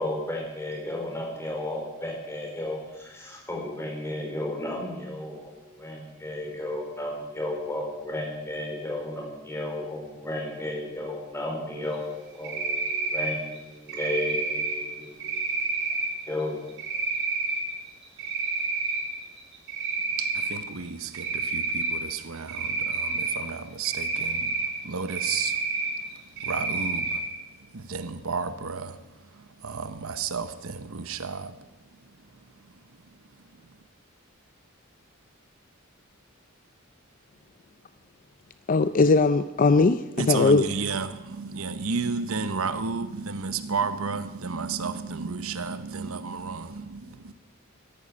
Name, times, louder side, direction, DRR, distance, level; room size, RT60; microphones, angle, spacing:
voice 1, 0.0-15.4 16.3-16.6, left 1 dB, 15° left, 4.1 m, -33 dB
Cricket, 12.4-13.3 13.9-14.7 15.2-16.1 16.8-17.6 18.0-19.0 19.4-20.5 21.1-22.0 22.5-23.3 23.8-24.7 25.1-25.9 26.4-27.2, right 4 dB, 60° right, 4.9 m, -28 dB
voice 2, 20.2-25.6 26.1-27.3 27.7-31.7 32.7-32.8 40.2-47.3, right 5 dB, 85° right, 1.0 m, -32 dB
voice 3, 38.7-40.7, left 3 dB, 40° left, 0.5 m, -20 dB
14.0 x 11.0 x 8.7 m
head